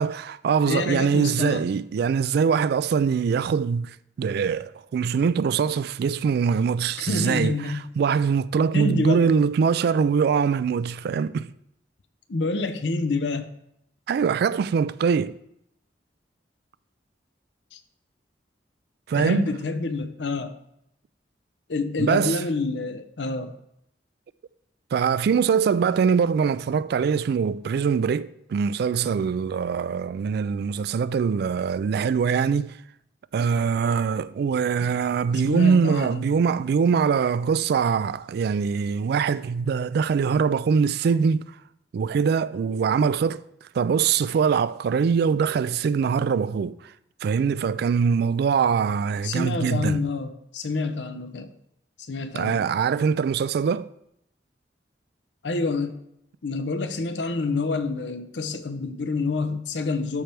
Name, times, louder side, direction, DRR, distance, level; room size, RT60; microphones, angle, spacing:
voice 1, 0.0-11.5 14.1-15.4 19.1-19.5 22.0-22.4 24.9-32.7 33.3-41.4 41.9-43.4 43.7-46.9 47.2-50.0 52.3-53.9, right 6 dB, 60° right, 0.3 m, -23 dB
voice 2, 0.6-1.6 7.0-7.8 8.7-9.3 12.3-13.5 17.7-17.8 19.1-20.5 21.7-23.5 34.8-34.9 35.4-36.2 49.2-51.5 52.0-52.6 55.4-56.0 56.4-60.2, left 3 dB, 85° left, 0.7 m, -27 dB
13.0 x 4.5 x 3.4 m
head